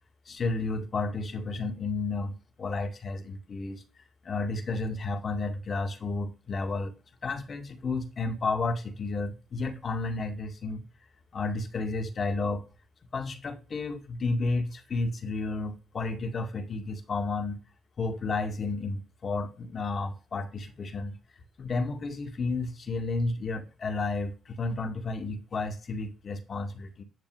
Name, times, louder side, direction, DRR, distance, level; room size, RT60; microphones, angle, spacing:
voice 1, 0.3-3.8 4.2-6.9 7.2-10.8 11.3-12.6 13.1-17.6 18.0-21.2 21.6-27.0, left 3 dB, 45° left, 2.1 m, -32 dB
10.5 x 7.0 x 4.9 m
cardioid pair, 90°, 0 cm